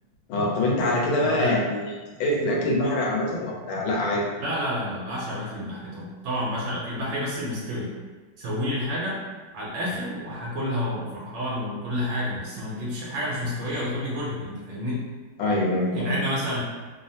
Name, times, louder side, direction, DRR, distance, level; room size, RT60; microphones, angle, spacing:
voice 1, 0.3-1.9 2.2-4.2 15.4-16.1, left 1 dB, 85° left, -2 dB, 1.5 m, -24 dB
voice 2, 1.2-1.6 4.4-7.9 8.4-9.2 9.5-15.1 15.9-16.6, left 1 dB, 75° right, -6 dB, 1.4 m, -29 dB
3.5 x 2.0 x 2.7 m, 1.3 s
omnidirectional pair, 2.2 m